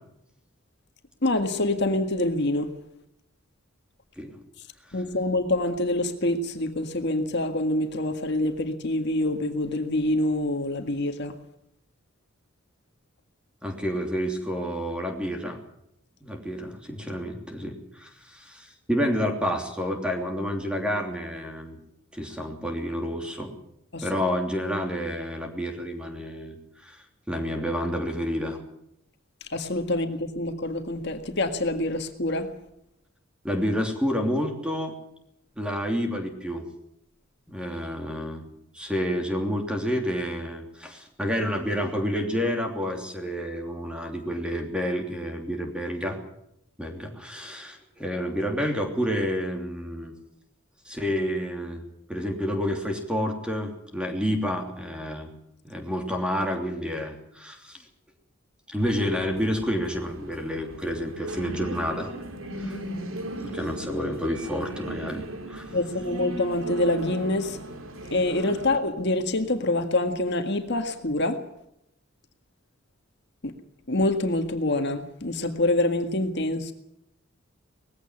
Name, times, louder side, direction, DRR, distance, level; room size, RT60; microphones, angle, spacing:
voice 1, 1.2-2.7 4.9-11.4 23.9-24.1 29.5-32.5 65.7-67.6 68.1-71.4 73.4-73.5 73.9-76.7, left 1 dB, 55° left, 6 dB, 1.8 m, -26 dB
voice 2, 13.6-15.6 16.2-21.8 22.1-23.5 24.0-28.6 33.4-35.0 35.6-36.6 37.5-38.4 38.7-46.2 46.8-50.1 50.9-51.8 52.1-55.3 55.6-57.8 58.7-62.1 62.6-62.8 63.4-65.2 65.5-65.7, equal, 5° right, 3 dB, 3.0 m, -29 dB
sound 1, 58.8-68.8, right 1 dB, 80° right, 2.8 m, -38 dB
20.0 x 16.0 x 9.7 m, 0.80 s
head